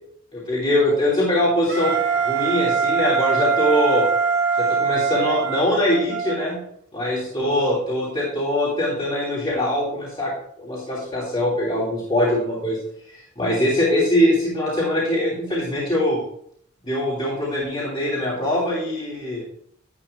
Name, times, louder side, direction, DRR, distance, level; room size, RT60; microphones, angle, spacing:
voice 1, 0.3-1.9 2.2-4.1 4.6-6.6 6.9-10.3 10.6-12.8 13.4-16.2 16.8-19.4, left 1 dB, 25° left, -6 dB, 3.0 m, -22 dB
Wind instrument woodwind instrument, 1.7-6.4, right 5 dB, 50° right, 1.4 m, -22 dB
12.0 x 11.0 x 2.3 m, 0.65 s
head